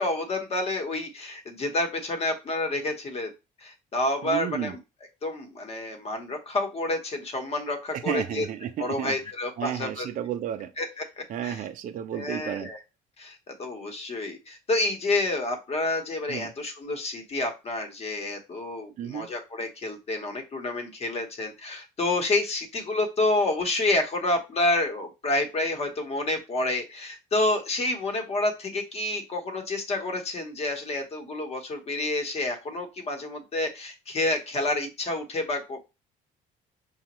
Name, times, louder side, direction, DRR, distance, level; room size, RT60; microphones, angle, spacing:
voice 1, 0.0-3.3 3.6-4.8 5.2-8.5 8.8-10.1 10.8-11.6 12.1-12.8 13.2-35.8, left 2 dB, 35° left, 1.0 m, -29 dB
voice 2, 4.2-4.8 7.9-9.2 9.6-10.7 11.3-12.7 16.3-16.5 19.0-19.3, right 10 dB, 50° right, 0.4 m, -32 dB
5.0 x 2.3 x 3.0 m
cardioid pair, 110°, 17 cm